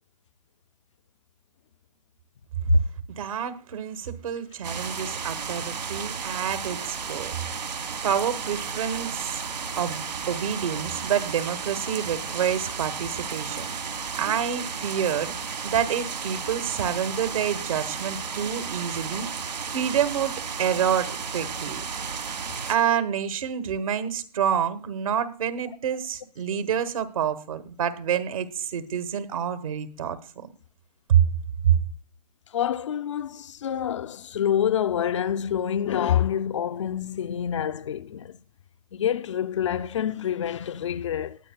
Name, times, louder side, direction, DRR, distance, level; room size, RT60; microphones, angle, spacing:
voice 1, 3.1-7.4 8.0-9.4 9.8-13.7 14.2-15.3 15.6-21.9 22.7-30.5 31.1-31.2 31.6-31.8, right 8 dB, 55° right, 1.2 m, -27 dB
sound 1, 4.6-22.8, right 6 dB, 85° right, 1.5 m, -33 dB
voice 2, 32.5-38.4 38.9-41.4, left 10 dB, 45° left, 0.5 m, -27 dB
20.0 x 8.7 x 2.2 m
hypercardioid pair, 150°, 21 cm